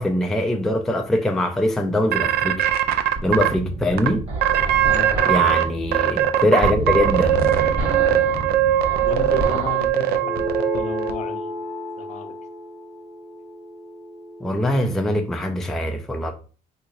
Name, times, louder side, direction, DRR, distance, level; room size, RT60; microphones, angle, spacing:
voice 1, 0.0-2.6 3.2-4.2 5.2-7.4 14.4-16.3, left 1 dB, ahead, 0.4 m, -22 dB
sound 1, 2.1-3.5 4.0-4.1 4.4-5.6 5.9-11.1, right 12 dB, 70° right, 0.5 m, -20 dB
sound 2, 3.2-9.9, right 1 dB, 35° right, 1.5 m, -29 dB
voice 2, 4.8-5.2 9.0-11.6 12.0-12.3, left 4 dB, 45° left, 0.7 m, -33 dB
sound 3, 10.2-15.0, left 1 dB, 85° left, 0.7 m, -32 dB
3.6 x 3.1 x 2.5 m
cardioid pair, 110°, 17 cm